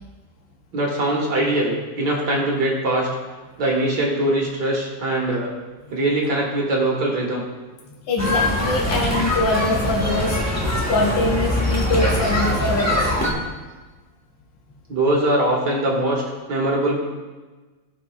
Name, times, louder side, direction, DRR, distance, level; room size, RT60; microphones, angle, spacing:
voice 1, 0.7-3.1 3.6-5.5 5.9-7.4 14.9-16.2 16.5-17.0, right 1 dB, 60° right, -2 dB, 2.1 m, -22 dB
voice 2, 8.1-10.6 10.9-13.1, left 2 dB, 75° left, -1 dB, 1.6 m, -23 dB
sound 1, 8.2-13.3, left 1 dB, 10° left, 0.8 m, -22 dB
15.0 x 5.4 x 2.3 m, 1.3 s
omnidirectional pair, 2.1 m